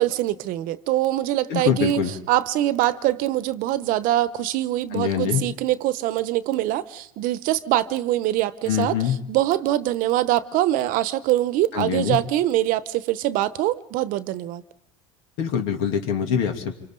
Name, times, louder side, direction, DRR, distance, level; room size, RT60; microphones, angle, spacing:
voice 1, 0.0-2.0 2.3-8.9 9.3-14.6, right 14 dB, 60° right, 0.9 m, -23 dB
voice 2, 1.5-2.1 4.9-5.5 8.6-9.2 11.7-12.2 15.4-16.7, left 8 dB, 75° left, 2.8 m, -24 dB
28.0 x 25.0 x 3.9 m
supercardioid pair, 115°, 16 cm